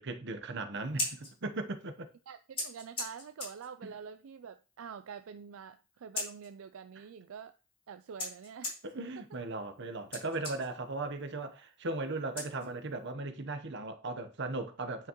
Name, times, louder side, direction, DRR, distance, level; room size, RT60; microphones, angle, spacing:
voice 1, 0.0-2.1 8.8-15.1, right 2 dB, 60° right, 0.9 m, -37 dB
Scissors, 0.7-13.1, left 2 dB, 25° left, 2.8 m, -44 dB
voice 2, 2.3-7.5 7.9-8.8 9.2-9.3, right 7 dB, 75° right, 0.4 m, -46 dB
9.1 x 5.9 x 3.0 m
head